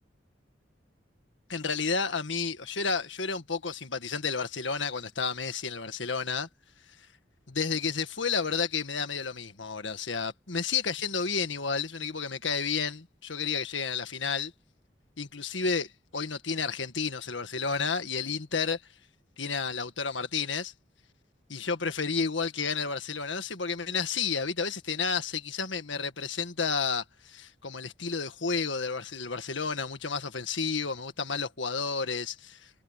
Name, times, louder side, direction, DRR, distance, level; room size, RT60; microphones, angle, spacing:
voice 1, 1.5-6.5 7.5-14.5 15.2-18.8 19.4-20.7 21.5-32.7, left 5 dB, 85° left, 1.7 m, -31 dB
head